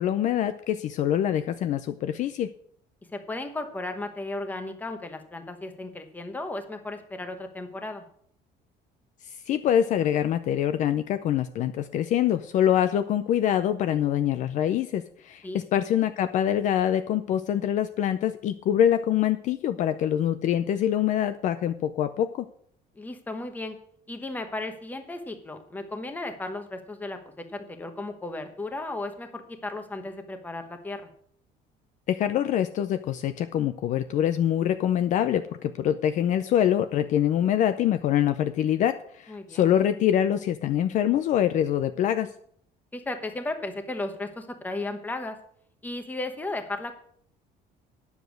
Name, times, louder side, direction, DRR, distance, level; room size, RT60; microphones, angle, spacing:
voice 1, 0.0-2.5 9.3-22.5 32.1-42.3, left 10 dB, 45° left, 10 dB, 0.5 m, -25 dB
voice 2, 3.1-8.0 15.4-15.6 22.9-23.8 24.1-31.1 39.3-39.7 42.9-45.4 45.8-46.9, left 2 dB, 10° left, 7 dB, 1.1 m, -35 dB
10.0 x 7.2 x 6.3 m, 0.62 s
cardioid pair, 180°, 17 cm